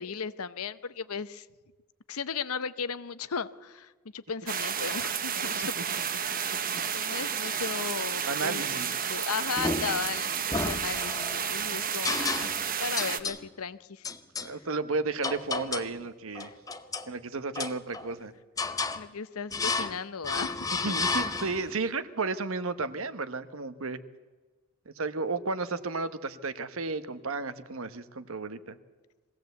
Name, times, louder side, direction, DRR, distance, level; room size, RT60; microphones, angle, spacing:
voice 1, 0.0-1.5 2.1-5.8 6.9-8.8 9.1-14.0 19.0-20.6 20.9-21.0, left 6 dB, 85° left, 15 dB, 0.8 m, -36 dB
sound 1, 4.5-13.2, right 7 dB, 40° right, 1.0 m, -31 dB
voice 2, 5.3-6.0 8.2-8.9 14.4-16.5 17.1-18.3 20.8-24.0 25.0-28.8, right 3 dB, 75° right, 12 dB, 1.1 m, -33 dB
sound 2, 9.6-10.1 10.5-11.4 12.0-12.7 13.0-13.4 14.0-14.5 15.2-16.0 16.3-17.1 17.5-18.2 18.6-19.0 19.5-20.0 20.2-21.7, left 3 dB, 15° left, 0.7 m, -32 dB
22.5 x 16.5 x 8.1 m, 1.3 s
head